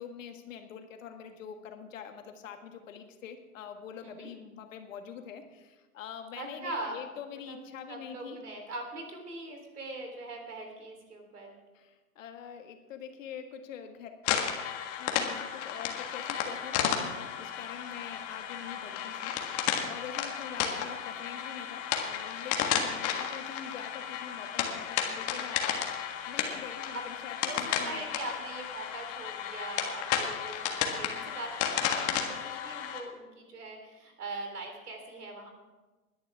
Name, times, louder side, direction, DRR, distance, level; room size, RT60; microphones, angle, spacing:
voice 1, 0.0-8.4 11.7-14.1 15.0-28.2, left 8 dB, 60° left, 6 dB, 1.8 m, -45 dB
voice 2, 6.3-7.0 7.5-7.6 7.9-11.5 26.9-27.0 27.5-35.5, right 2 dB, 80° right, 3 dB, 3.9 m, -41 dB
sound 1, 14.2-33.0, left 8 dB, 30° left, 1.7 m, -33 dB
20.5 x 10.5 x 3.6 m, 1.2 s
hypercardioid pair, 125°, 45 cm